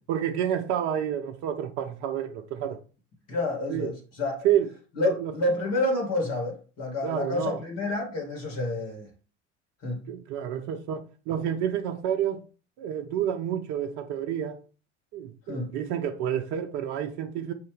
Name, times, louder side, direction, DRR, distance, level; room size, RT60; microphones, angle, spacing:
voice 1, 0.1-2.8 3.7-3.9 4.4-4.7 5.0-5.3 7.0-7.6 10.1-12.4 12.8-14.6 15.1-17.5, right 10 dB, 55° right, 0.6 m, -29 dB
voice 2, 3.3-4.5 5.0-9.1 9.8-10.0 15.5-15.7, left 2 dB, 45° left, 2.0 m, -29 dB
5.6 x 2.8 x 3.3 m
hypercardioid pair, 75°, 35 cm